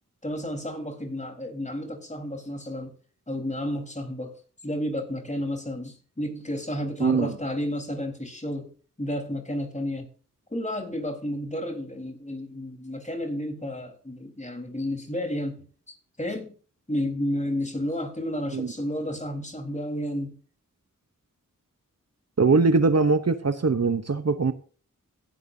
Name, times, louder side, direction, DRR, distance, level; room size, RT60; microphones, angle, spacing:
voice 1, 0.2-2.9 3.3-4.3 4.6-8.7 9.0-10.1 10.5-16.6 16.9-20.3, left 1 dB, 20° left, 4.0 m, -31 dB
voice 2, 7.0-7.3 18.5-18.7 22.4-24.5, right 4 dB, 50° right, 0.9 m, -21 dB
16.5 x 11.0 x 2.7 m
wide cardioid pair, 45°, 32 cm